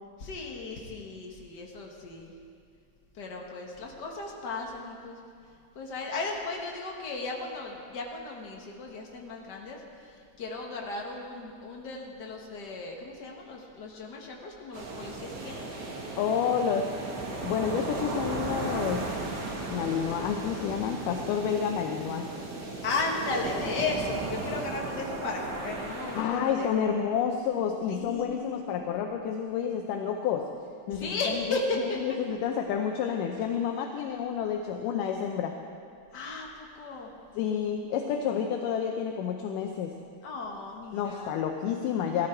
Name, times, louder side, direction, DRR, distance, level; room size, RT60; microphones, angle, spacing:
voice 1, 0.2-2.3 3.1-5.2 5.7-15.6 22.8-26.7 27.9-28.8 30.9-31.8 36.1-37.1 40.2-41.3, left 3 dB, 55° left, 0 dB, 1.1 m, -35 dB
sound 1, 14.7-26.2, right 2 dB, 45° right, 1.5 m, -35 dB
voice 2, 16.2-16.9 17.4-19.1 19.7-22.3 26.1-30.5 30.9-35.5 37.4-39.9 40.9-42.3, left 7 dB, 80° left, 3 dB, 2.2 m, -29 dB
15.5 x 13.5 x 4.5 m, 2.3 s
omnidirectional pair, 3.8 m